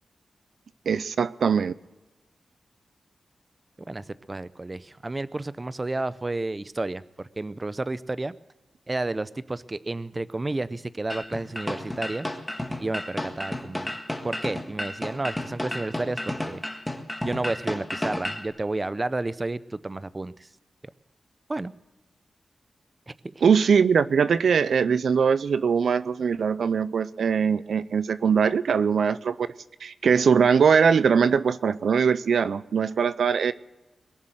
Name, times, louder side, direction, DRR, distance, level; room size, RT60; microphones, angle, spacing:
voice 1, 0.9-1.7 23.4-29.5 29.8-33.5, right 6 dB, 80° right, 15 dB, 0.5 m, -21 dB
voice 2, 3.8-7.0 7.4-8.3 8.9-12.3 12.8-13.9 14.2-16.2 16.5-16.6 17.2-20.3 21.5-21.7 23.1-23.3, right 2 dB, 25° right, 16 dB, 0.6 m, -31 dB
sound 1, 11.1-18.5, left 1 dB, 10° left, 1.6 m, -32 dB
22.0 x 7.3 x 7.8 m, 1.1 s
wide cardioid pair, 95°, 0 cm